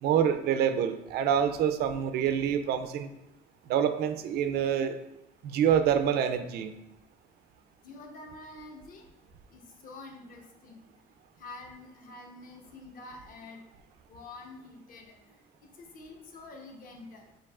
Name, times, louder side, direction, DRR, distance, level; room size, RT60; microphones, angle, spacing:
voice 1, 0.0-3.1 3.7-5.0 5.4-6.7, right 8 dB, 70° right, 9 dB, 0.4 m, -26 dB
voice 2, 7.8-9.0 9.5-10.8 11.4-13.6 14.1-15.4 15.8-17.2, left 2 dB, 55° left, 2 dB, 0.8 m, -47 dB
7.0 x 2.7 x 2.4 m, 0.88 s
cardioid pair, 110°, 17 cm